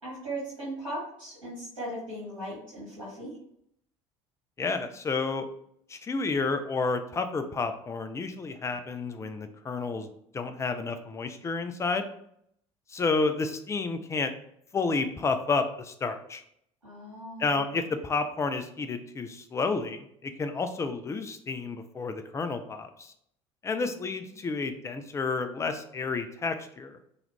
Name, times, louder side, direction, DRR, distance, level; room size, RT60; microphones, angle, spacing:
voice 1, 0.0-3.4 16.8-17.7 24.1-24.3, right 1 dB, 85° right, -9 dB, 1.2 m, -38 dB
voice 2, 4.6-5.5 5.9-10.1 10.3-12.1 12.9-14.3 14.7-16.4 17.4-23.1 23.6-27.0, left 4 dB, 15° left, 8 dB, 0.4 m, -30 dB
3.0 x 2.4 x 3.3 m, 0.71 s
figure-of-eight pair, 60°, 17 cm